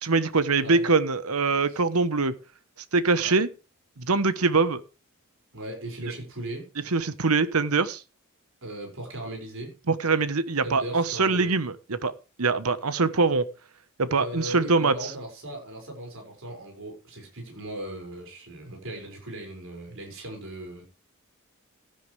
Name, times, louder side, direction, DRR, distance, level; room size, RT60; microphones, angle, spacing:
voice 1, 0.0-2.3 2.9-3.5 4.0-4.8 6.9-8.0 9.9-12.1 12.4-13.5 14.0-15.1, right 4 dB, 80° right, 1.1 m, -23 dB
voice 2, 5.5-6.7 8.6-9.8 10.6-11.5 14.1-20.8, right 1 dB, 60° right, 6.0 m, -38 dB
15.5 x 10.5 x 3.4 m
head